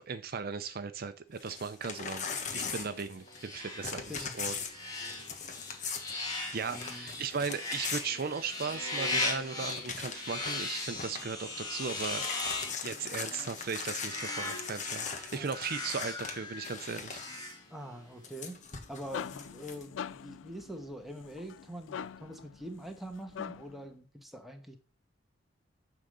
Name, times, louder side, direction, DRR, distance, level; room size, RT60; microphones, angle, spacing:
voice 1, 0.1-2.2 2.5-4.5 6.5-12.3 12.8-17.2, right 5 dB, 55° right, 10 dB, 0.6 m, -37 dB
Crumpling crinkling / Tearing, 1.4-3.5 3.8-8.9 9.3-9.4 9.6-10.7 10.9-11.3 11.7-17.4 18.2-19.8, left 5 dB, 40° left, 1.3 m, -40 dB
sound 1, 2.2-18.1, left 2 dB, 20° left, 2.0 m, -39 dB
voice 2, 4.1-4.6 6.7-7.1 15.3-15.5 17.7-24.8, equal, ahead, 3 dB, 1.3 m, -44 dB
sound 2, 18.6-23.9, left 8 dB, 85° left, 0.3 m, -44 dB
9.7 x 3.8 x 6.8 m, 0.35 s
head